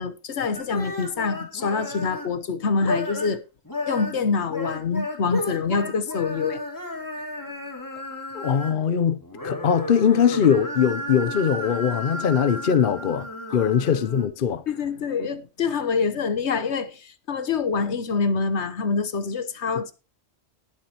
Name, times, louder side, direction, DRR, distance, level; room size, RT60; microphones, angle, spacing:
voice 1, 0.0-3.4 3.9-6.6 13.5-13.6 14.7-19.9, left 5 dB, 70° left, 1.3 m, -26 dB
sound 1, 0.5-2.4 2.8-3.4 3.7-8.9 9.2-14.3, left 1 dB, 15° left, 2.7 m, -33 dB
voice 2, 8.3-13.3 13.5-14.6, left 7 dB, 55° left, 0.8 m, -21 dB
19.5 x 7.4 x 2.9 m
omnidirectional pair, 1.2 m